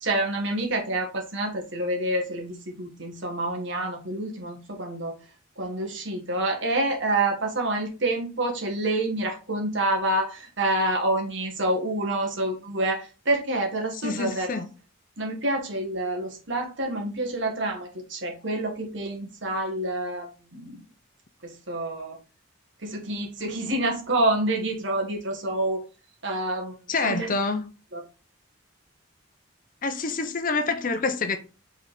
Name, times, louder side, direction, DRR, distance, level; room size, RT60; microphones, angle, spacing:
voice 1, 0.0-5.1 5.6-14.6 15.2-20.8 21.4-22.2 22.8-25.8 26.2-26.7 27.0-27.3 27.9-28.0, right 1 dB, 60° right, 1.7 m, -27 dB
voice 2, 14.0-14.7 26.9-27.7 29.8-31.4, left 4 dB, 40° left, 0.6 m, -27 dB
5.3 x 4.0 x 4.9 m
head